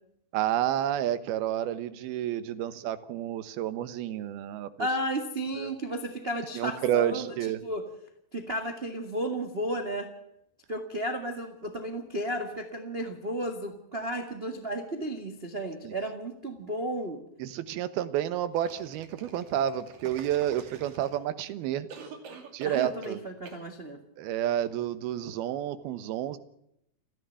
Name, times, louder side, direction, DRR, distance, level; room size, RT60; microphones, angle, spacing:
voice 1, 0.3-4.9 5.6-5.7 6.5-7.6 15.8-15.9 17.4-21.9 22.5-23.2 24.2-26.4, right 11 dB, 75° right, 13 dB, 3.0 m, -30 dB
voice 2, 4.8-7.8 8.3-10.1 10.7-17.2 22.6-24.0, right 1 dB, 35° right, 6 dB, 0.9 m, -33 dB
sound 1, 18.5-21.4 21.9-23.2 23.5-23.6, right 5 dB, 55° right, 4.0 m, -47 dB
29.5 x 11.0 x 9.1 m, 0.77 s
omnidirectional pair, 4.7 m